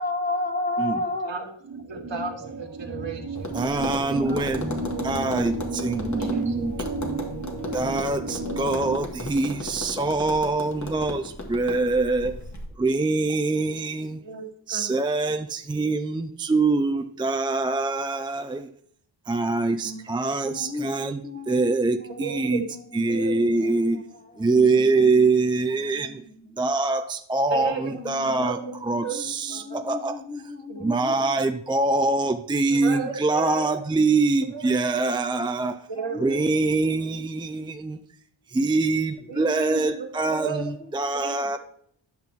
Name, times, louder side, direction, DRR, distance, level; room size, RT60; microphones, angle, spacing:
voice 1, 0.0-1.5 19.8-22.9 23.6-24.1 24.3-25.4 25.7-26.6 27.5-31.4 36.0-36.5 40.6-40.8, left 2 dB, 20° left, 0.9 m, -34 dB
sound 1, 1.6-9.0, right 2 dB, 45° right, 1.3 m, -32 dB
voice 2, 1.9-3.7 4.2-4.4 6.2-6.5 14.2-15.0 20.7-20.9 22.2-22.6 23.1-23.9 27.5-28.7 29.0-29.2 29.5-29.8 30.7-30.8 31.1-31.2 32.7-33.8 34.5-35.0 35.9-36.4 39.3-40.8 41.1-41.6, right 6 dB, 65° right, 1.6 m, -35 dB
Tap, 3.3-12.7, left 2 dB, 35° left, 1.7 m, -36 dB
voice 3, 3.5-6.9 7.7-12.4 12.8-14.3 14.7-18.7 19.3-21.2 21.5-22.7 22.9-24.0 24.4-26.2 26.6-30.2 30.8-35.9 36.2-38.0 38.5-41.6, right 3 dB, 10° right, 0.4 m, -24 dB
11.0 x 5.8 x 3.6 m
cardioid pair, 60°, 47 cm